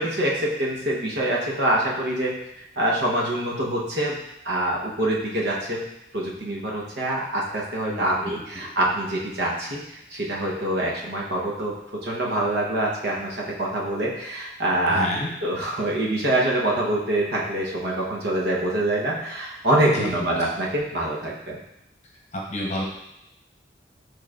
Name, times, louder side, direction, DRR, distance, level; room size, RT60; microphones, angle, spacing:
voice 1, 0.0-2.3 2.8-4.2 4.4-5.8 6.1-11.7 12.0-15.1 15.4-21.6, right 1 dB, 65° right, -4 dB, 1.0 m, -25 dB
voice 2, 7.9-8.7 14.9-15.3 19.9-20.4 22.3-22.9, left 1 dB, 40° left, -3 dB, 0.9 m, -31 dB
6.6 x 3.2 x 2.5 m, 0.84 s
head